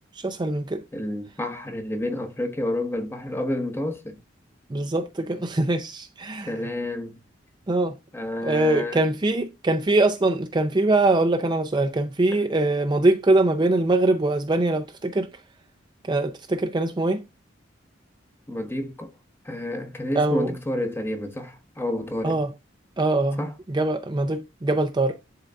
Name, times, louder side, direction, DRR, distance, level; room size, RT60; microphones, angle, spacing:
voice 1, 0.2-0.8 4.7-6.5 7.7-8.0 8.4-15.3 16.1-17.2 20.2-20.5 22.2-22.5 23.0-23.4 23.7-25.2, right 2 dB, 25° right, 0.5 m, -23 dB
voice 2, 0.9-4.2 6.4-7.2 8.1-9.0 12.3-12.4 18.5-19.1 19.4-22.4 23.4-23.5, left 1 dB, 10° left, 1.0 m, -29 dB
11.0 x 3.8 x 2.4 m
head